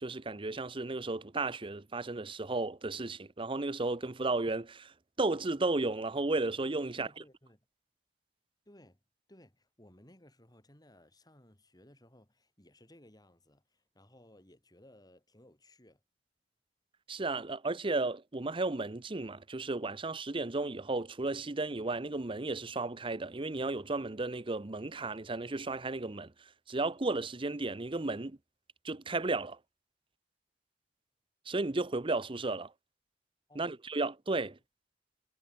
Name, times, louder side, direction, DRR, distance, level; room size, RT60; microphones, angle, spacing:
voice 1, 0.0-4.9 5.2-7.1 17.1-26.3 26.7-28.4 28.8-29.6 31.5-32.7 33.6-34.5, right 2 dB, 30° right, 0.8 m, -34 dB
voice 2, 6.9-7.7 8.7-9.0 9.3-16.0 33.5-33.8 34.4-34.5, left 1 dB, 25° left, 5.4 m, -60 dB
head